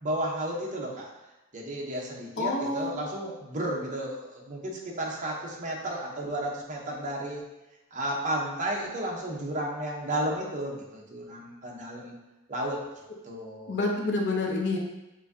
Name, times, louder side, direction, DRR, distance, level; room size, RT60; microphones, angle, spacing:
voice 1, 0.0-1.1 1.5-7.4 7.9-12.2 12.5-12.8 13.2-13.8, right 1 dB, 35° right, -3 dB, 0.8 m, -33 dB
voice 2, 2.4-3.0 13.7-14.8, left 2 dB, 55° left, 0 dB, 0.7 m, -28 dB
7.2 x 2.6 x 2.7 m, 1.0 s
head